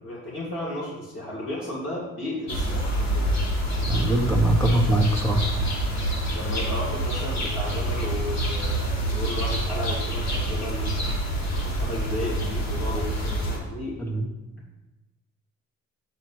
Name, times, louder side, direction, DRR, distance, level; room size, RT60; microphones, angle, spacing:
voice 1, 0.0-3.3 6.3-11.1 11.6-14.1, left 1 dB, 45° left, -6 dB, 3.3 m, -34 dB
sound 1, 2.5-13.6, right 1 dB, 65° left, 2.7 m, -26 dB
voice 2, 3.9-5.5 14.0-14.3, right 1 dB, 10° left, 0 dB, 1.6 m, -22 dB
8.8 x 8.2 x 3.2 m, 1.0 s
cardioid pair, 90°, 30 cm